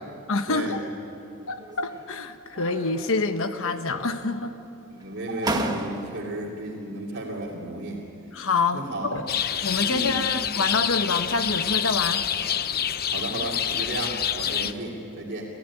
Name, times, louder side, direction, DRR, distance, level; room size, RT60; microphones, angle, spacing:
voice 1, 0.3-0.9 1.5-4.5 8.3-8.9 9.1-9.3 9.6-12.2 14.6-14.7, left 3 dB, 65° left, 9 dB, 1.1 m, -27 dB
sound 1, 1.6-2.2 2.5-3.3 3.6-4.4 5.0-5.1 5.4-6.4, right 1 dB, 20° right, 1.4 m, -33 dB
voice 2, 4.9-8.0 8.7-9.2 9.8-10.2 13.1-15.5, right 1 dB, 50° right, -6 dB, 2.9 m, -33 dB
sound 2, 9.3-14.7, left 9 dB, 45° left, 0.7 m, -27 dB
29.0 x 14.5 x 9.9 m, 2.8 s
head